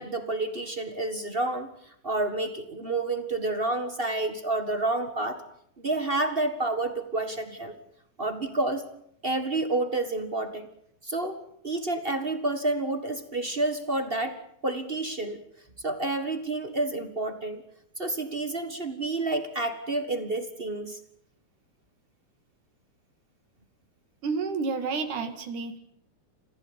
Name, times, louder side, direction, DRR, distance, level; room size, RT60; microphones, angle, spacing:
voice 1, 0.0-1.7 2.0-5.4 5.8-7.7 8.2-8.8 9.2-10.7 11.0-14.4 14.6-15.4 15.8-17.6 18.0-21.0, right 2 dB, 30° right, 8 dB, 1.1 m, -29 dB
voice 2, 24.2-25.8, right 4 dB, 75° right, 7 dB, 3.7 m, -30 dB
29.0 x 15.5 x 8.8 m, 0.72 s
omnidirectional pair, 3.6 m